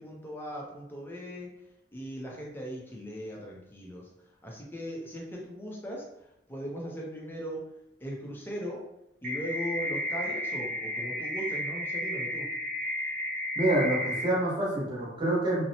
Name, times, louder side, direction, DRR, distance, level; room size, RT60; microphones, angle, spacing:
voice 1, 0.0-1.5 1.9-4.1 4.4-7.6 8.0-8.8 9.2-12.5, equal, 10° left, -2 dB, 0.5 m, -38 dB
sound 1, 9.2-14.2, left 1 dB, 45° right, 0.7 m, -33 dB
voice 2, 13.5-15.6, right 1 dB, 25° right, -7 dB, 1.0 m, -27 dB
2.7 x 2.0 x 2.7 m, 0.81 s
head